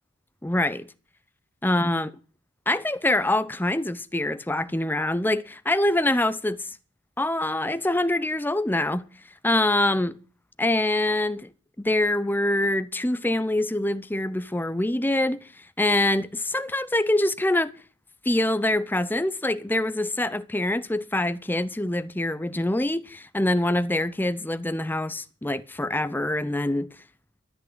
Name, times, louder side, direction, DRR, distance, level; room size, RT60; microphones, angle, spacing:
voice 1, 0.4-0.9 1.6-2.1 2.7-6.8 7.2-9.0 9.4-10.2 10.6-11.5 11.8-15.4 15.8-17.7 18.2-26.9, left 1 dB, 10° left, 0.6 m, -25 dB
13.0 x 8.4 x 8.0 m
head